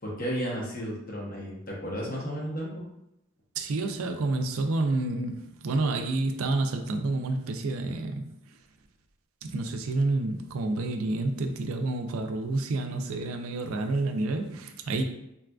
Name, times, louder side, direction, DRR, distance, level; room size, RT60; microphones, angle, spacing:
voice 1, 0.0-2.8, equal, 40° left, -3 dB, 0.9 m, -33 dB
voice 2, 3.6-8.3 9.4-15.0, right 2 dB, 85° right, 6 dB, 0.4 m, -29 dB
3.9 x 2.5 x 2.3 m, 0.84 s
head